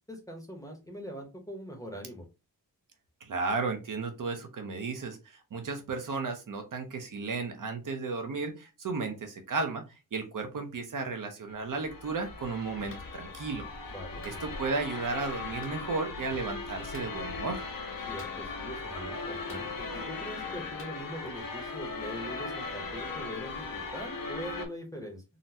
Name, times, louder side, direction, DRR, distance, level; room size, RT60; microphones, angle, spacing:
voice 1, 0.1-2.3 13.9-14.2 18.1-25.2, equal, 10° left, 2 dB, 0.7 m, -42 dB
voice 2, 3.2-5.2 5.5-9.8 10.1-13.7 14.2-17.6, right 4 dB, 60° right, 5 dB, 0.7 m, -34 dB
sound 1, 11.5-24.7, left 4 dB, 65° left, 0.8 m, -38 dB
Clapping, 12.9-13.1 14.2-14.4 15.6-15.8 16.9-17.1 18.2-18.6 19.5-20.1 20.8-21.0, left 2 dB, 35° left, 0.8 m, -51 dB
3.8 x 2.1 x 2.7 m, 0.27 s
wide cardioid pair, 140°, 37 cm